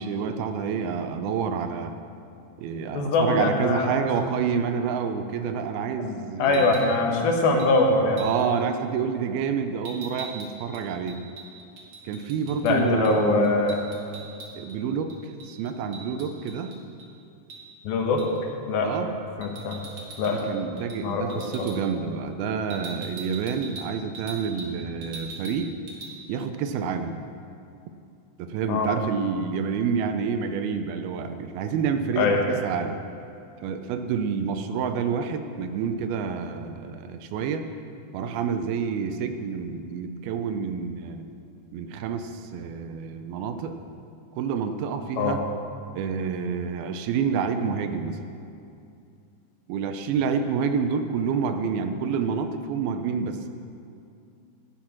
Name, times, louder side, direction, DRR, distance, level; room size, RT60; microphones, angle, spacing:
voice 1, 0.0-2.0 2.6-6.8 8.2-11.2 12.1-13.5 14.6-16.7 18.8-19.1 20.3-25.7 26.3-27.2 28.4-33.0 33.6-37.7 38.1-41.3 41.7-43.8 44.4-45.4 45.9-48.2 49.7-53.5, right 6 dB, 80° right, 7 dB, 2.5 m, -28 dB
voice 2, 2.9-4.1 6.0-6.1 6.4-8.2 12.6-13.8 17.9-18.2 18.7-19.0 19.4-19.8 20.2-20.4 21.0-21.7 28.7-28.9 32.2-32.4 45.2-45.4, left 3 dB, 75° left, 1 dB, 3.0 m, -23 dB
sound 1, 6.4-6.9 7.6-7.7 8.2-8.5 9.8-12.7 13.0-13.2 13.4-14.8 15.1-17.1 17.5-17.6 18.2-18.4 19.4-20.5 20.8-21.0 21.3-21.8 22.7-24.7 25.0-25.6 25.9-26.1, right 3 dB, 50° right, 2.4 m, -41 dB
11.5 x 9.2 x 5.9 m, 2.5 s
omnidirectional pair, 4.4 m